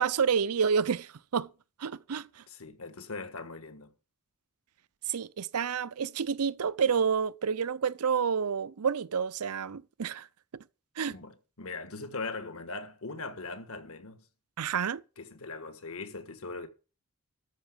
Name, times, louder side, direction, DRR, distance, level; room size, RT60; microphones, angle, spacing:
voice 1, 0.0-1.5 1.8-2.4 5.1-10.3 11.0-11.2 14.6-15.0, right 6 dB, 80° right, 0.6 m, -29 dB
voice 2, 2.5-3.9 11.1-14.2 15.2-16.7, left 3 dB, 70° left, 1.5 m, -40 dB
13.0 x 5.8 x 7.5 m
head